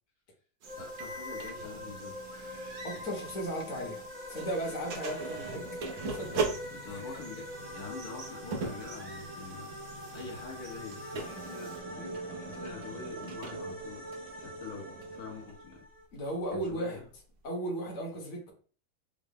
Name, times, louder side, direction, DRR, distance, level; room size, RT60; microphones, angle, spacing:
sound 1, 0.6-11.8, right 3 dB, 90° right, 1.4 m, -52 dB
sound 2, 0.7-16.0, equal, 30° right, 0.8 m, -44 dB
voice 1, 0.8-2.2 6.7-9.7 10.1-14.0 14.4-15.8 16.5-17.0, left 5 dB, 75° left, -2 dB, 1.3 m, -45 dB
sound 3, 1.0-4.1 4.4-15.5, right 3 dB, 60° right, 1.0 m, -41 dB
voice 2, 2.8-4.0 4.3-5.6 6.2-6.4 6.9-7.1 16.1-17.0 17.4-18.5, right 1 dB, 55° left, -1 dB, 1.3 m, -35 dB
3.8 x 2.0 x 3.6 m, 0.41 s
omnidirectional pair, 1.6 m